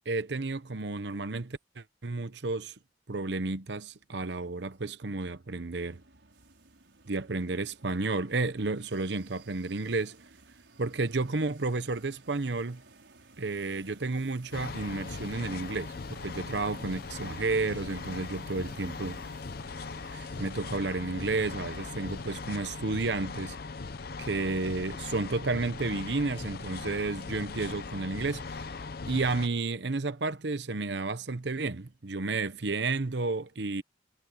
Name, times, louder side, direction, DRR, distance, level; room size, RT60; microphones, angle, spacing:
voice 1, 0.1-2.7 3.1-6.0 7.1-10.2 10.8-12.8 13.4-19.2 20.1-23.6 24.2-28.7 29.1-33.8, right 3 dB, 70° right, 0.9 m, -32 dB
sound 1, 5.8-22.4, right 3 dB, 85° right, 5.6 m, -56 dB
sound 2, 14.5-29.5, left 4 dB, 55° left, 0.6 m, -40 dB
head